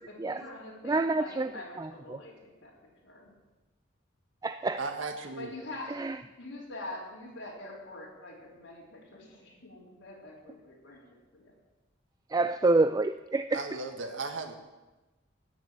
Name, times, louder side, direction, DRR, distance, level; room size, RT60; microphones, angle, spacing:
voice 1, 0.1-2.7 3.0-3.3 5.4-6.1 6.4-11.5, left 2 dB, 90° left, -5 dB, 3.6 m, -45 dB
voice 2, 0.8-1.5 1.8-2.2 4.4-4.8 5.9-6.2 12.3-13.6, right 3 dB, 20° right, 10 dB, 0.3 m, -27 dB
voice 3, 4.8-5.5 13.5-14.5, right 3 dB, 90° right, 5 dB, 1.7 m, -36 dB
16.5 x 6.8 x 9.0 m, 1.1 s
head